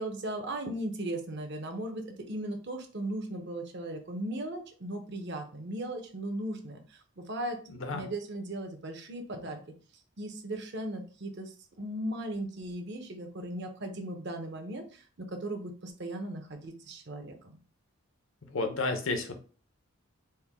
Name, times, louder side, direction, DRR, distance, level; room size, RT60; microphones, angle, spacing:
voice 1, 0.0-7.6 7.9-9.6 10.2-17.6, right 1 dB, 50° right, 5 dB, 0.7 m, -37 dB
voice 2, 7.7-8.0 18.5-19.4, left 3 dB, 60° left, 6 dB, 0.7 m, -31 dB
4.4 x 2.1 x 3.5 m, 0.38 s
head